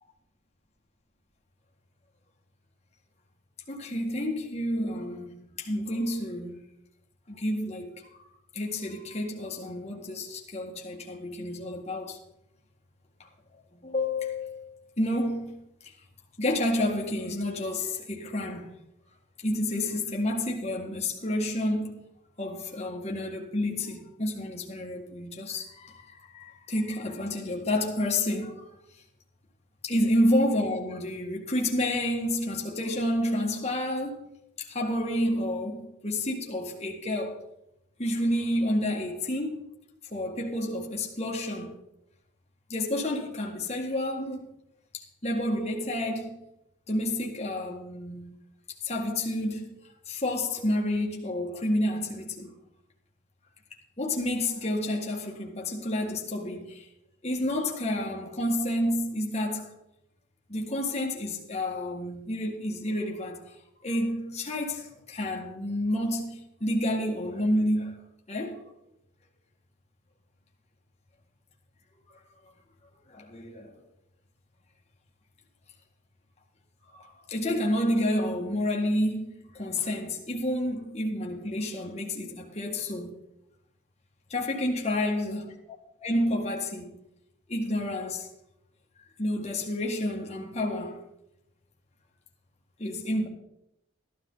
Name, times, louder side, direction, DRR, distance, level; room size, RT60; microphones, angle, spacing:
voice 1, 3.7-6.6 7.3-8.0 8.5-12.2 13.8-14.7 15.0-15.9 16.4-18.7 19.4-22.0 22.4-28.7 29.8-34.3 34.6-37.4 38.0-39.6 40.1-41.8 42.7-44.5 44.9-46.4 46.9-48.3 48.8-49.7 50.1-52.5 54.0-56.9 57.2-59.7 60.5-63.4 63.8-68.0 68.3-68.6 73.1-73.7 76.9-83.1 84.3-85.6 86.0-86.9 87.5-88.3 89.2-91.0 92.8-93.3, left 1 dB, 35° left, 1.8 m, -29 dB
14.5 x 12.0 x 3.9 m
head